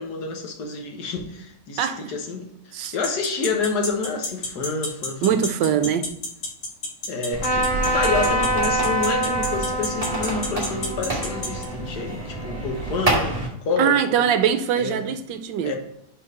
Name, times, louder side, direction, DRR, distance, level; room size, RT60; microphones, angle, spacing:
voice 1, 0.0-5.4 5.8-5.9 7.1-14.2 14.8-15.1 15.6-15.8, left 4 dB, 60° left, 1.6 m, -28 dB
voice 2, 1.8-2.1 2.7-2.9 5.2-6.1 13.8-15.8, right 8 dB, 75° right, 1.3 m, -22 dB
sound 1, 2.8-11.6, left 2 dB, 45° left, 1.4 m, -29 dB
sound 2, 7.3-13.5, right 2 dB, 20° right, 1.4 m, -29 dB
Trumpet, 7.4-12.9, right 1 dB, 85° left, 2.8 m, -26 dB
5.4 x 4.4 x 4.9 m
omnidirectional pair, 2.1 m